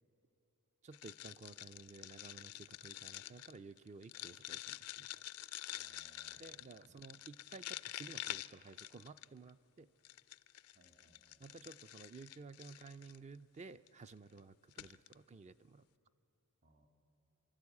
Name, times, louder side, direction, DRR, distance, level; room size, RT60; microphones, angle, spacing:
voice 1, 0.8-5.1 6.4-9.9 11.4-15.9, right 4 dB, 30° right, 12 dB, 0.4 m, -54 dB
sound 1, 0.9-9.5 10.0-13.2 13.9-14.1 14.4-14.5 14.7-15.1, left 14 dB, 80° left, 0.4 m, -48 dB
voice 2, 5.7-7.0 10.7-11.4 16.6-16.9, right 1 dB, 60° right, 4 dB, 2.4 m, -69 dB
29.0 x 12.0 x 8.4 m, 3.0 s
head